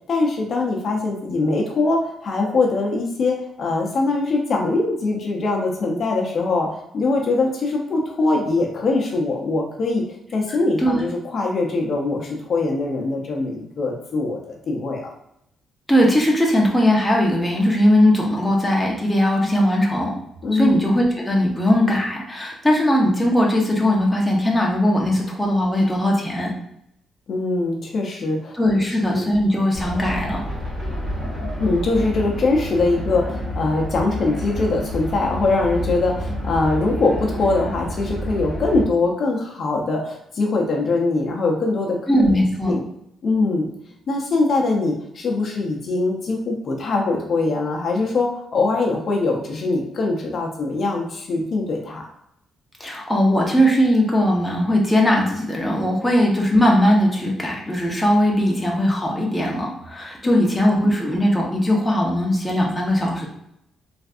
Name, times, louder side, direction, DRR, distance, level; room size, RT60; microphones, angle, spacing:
voice 1, 0.1-10.0 10.3-15.1 20.4-20.8 27.3-29.3 31.6-42.3 42.7-42.8 43.2-43.7 44.1-52.0 60.3-60.4, left 3 dB, 50° left, 0 dB, 0.6 m, -22 dB
voice 2, 15.9-20.1 20.5-26.5 28.5-30.5 42.1-42.7 52.8-63.3, equal, 10° left, -2 dB, 0.7 m, -19 dB
sound 1, 29.7-38.8, equal, 25° right, 1.1 m, -29 dB
3.3 x 2.5 x 2.4 m, 0.78 s
cardioid pair, 115°, 0 cm